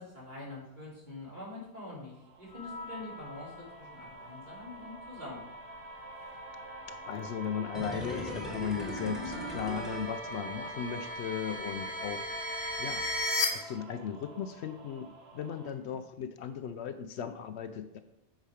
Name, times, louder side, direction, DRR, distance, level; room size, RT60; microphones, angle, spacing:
voice 1, 0.0-5.5 15.6-15.9, left 2 dB, 40° right, -7 dB, 3.4 m, -45 dB
sound 1, 2.1-15.7, right 3 dB, 65° right, 1.2 m, -50 dB
sound 2, 2.5-13.5, left 1 dB, 50° left, 1.5 m, -39 dB
voice 2, 6.7-13.1 13.5-18.0, left 8 dB, 75° left, 10 dB, 0.8 m, -37 dB
sound 3, 7.7-10.9 11.2-11.3, equal, ahead, 1.2 m, -39 dB
8.1 x 5.1 x 5.0 m, 0.87 s
omnidirectional pair, 1.2 m